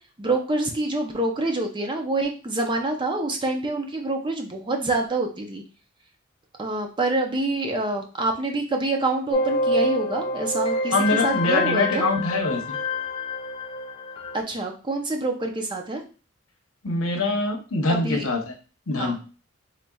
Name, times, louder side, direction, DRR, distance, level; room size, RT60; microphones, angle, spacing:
voice 1, 0.2-5.6 6.6-12.0 14.3-16.0 17.9-18.3 18.9-19.2, right 2 dB, 25° right, 3 dB, 0.6 m, -26 dB
sound 1, 9.3-14.4, left 1 dB, 25° left, 0.4 m, -26 dB
voice 2, 10.9-12.8 16.8-18.5 18.9-19.2, left 2 dB, 85° left, 3 dB, 0.9 m, -24 dB
4.1 x 3.2 x 2.3 m, 0.34 s
head